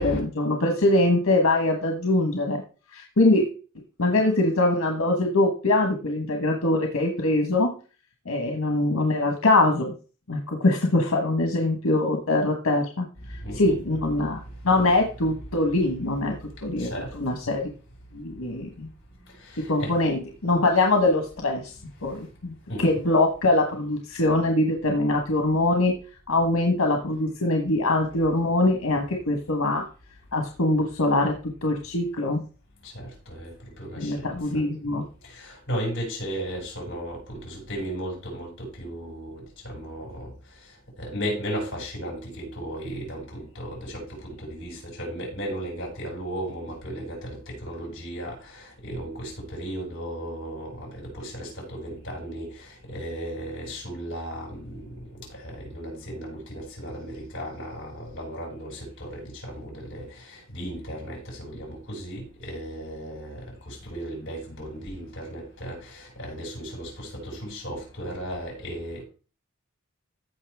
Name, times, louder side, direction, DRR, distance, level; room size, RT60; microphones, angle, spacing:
voice 1, 0.0-2.6 2.9-3.4 4.0-7.7 8.2-9.9 10.3-13.1 13.6-16.3 16.6-16.9 17.2-17.7 18.1-18.9 19.7-21.6 22.0-25.9 26.3-29.8 30.3-31.3 31.6-32.4 34.0-35.0, left 2 dB, 90° left, 3 dB, 1.4 m, -23 dB
voice 2, 13.4-13.8 16.8-17.2 19.5-20.0 22.7-22.9 32.8-34.6 34.9-35.0 35.3-40.3 41.0-54.9 55.3-69.0, equal, 60° left, 0 dB, 6.5 m, -35 dB
15.0 x 5.6 x 3.6 m, 0.36 s
head